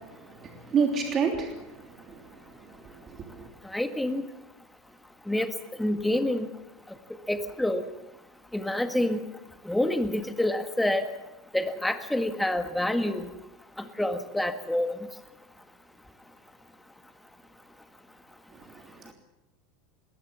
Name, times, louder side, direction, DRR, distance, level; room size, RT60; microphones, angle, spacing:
voice 1, 0.4-1.5 2.1-2.2 3.2-3.5, right 5 dB, 35° right, 3 dB, 3.2 m, -27 dB
voice 2, 3.7-4.2 5.3-5.5 5.8-6.5 7.3-7.9 8.5-9.2 9.6-11.0 11.5-13.3 13.8-15.0, left 1 dB, 5° left, 8 dB, 1.8 m, -27 dB
22.0 x 19.0 x 7.1 m, 0.99 s
figure-of-eight pair, 80°, 0 cm